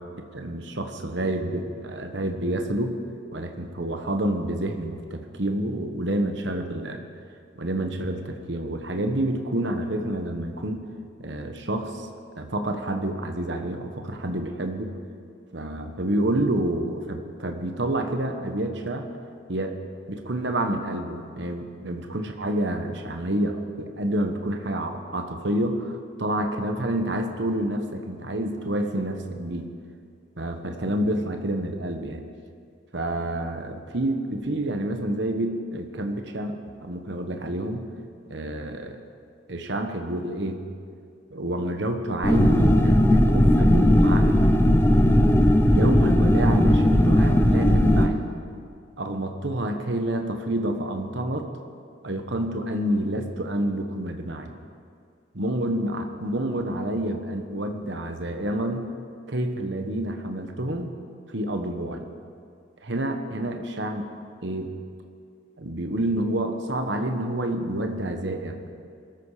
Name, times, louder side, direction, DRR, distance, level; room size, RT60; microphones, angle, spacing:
voice 1, 0.3-2.9 3.3-7.0 7.5-10.8 11.2-12.1 12.4-14.9 15.5-19.1 19.5-19.8 20.1-29.7 30.4-32.3 32.9-37.8 38.3-39.0 39.5-40.6 41.3-44.4 45.7-48.2 49.0-51.5 52.0-54.5 55.3-58.8 59.3-60.9 61.3-62.0 62.8-64.1 64.4-64.7 65.6-68.8, right 1 dB, 60° right, 5 dB, 1.2 m, -28 dB
sound 1, 42.2-48.1, left 1 dB, 10° left, 0.7 m, -17 dB
21.0 x 13.5 x 5.0 m, 2.3 s
head